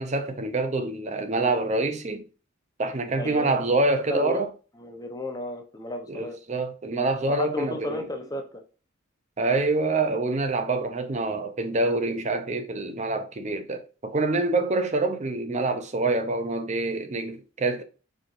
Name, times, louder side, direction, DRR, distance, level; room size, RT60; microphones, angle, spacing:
voice 1, 0.0-2.2 2.8-4.5 6.1-8.1 9.4-17.8, right 2 dB, 35° right, 0.5 m, -26 dB
voice 2, 3.1-3.7 4.1-4.4 4.8-6.4 7.2-8.6, left 1 dB, 20° left, 0.8 m, -33 dB
4.7 x 4.3 x 2.5 m
head